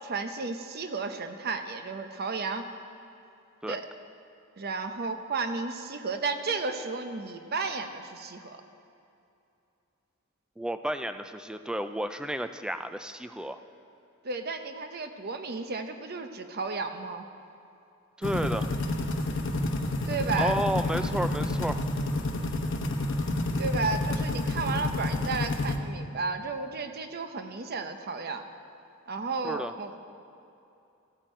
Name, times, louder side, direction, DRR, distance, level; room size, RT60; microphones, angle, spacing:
voice 1, 0.0-2.7 3.7-3.8 4.6-8.6 14.2-17.3 20.1-20.6 23.6-28.4 29.1-30.1, right 4 dB, 50° right, 7 dB, 0.7 m, -33 dB
voice 2, 10.6-13.6 18.2-18.7 20.4-21.8 29.4-29.7, equal, 5° right, 9 dB, 0.3 m, -31 dB
sound 1, 18.2-25.8, left 2 dB, 60° left, 0.9 m, -29 dB
16.0 x 8.9 x 4.4 m, 2.7 s
head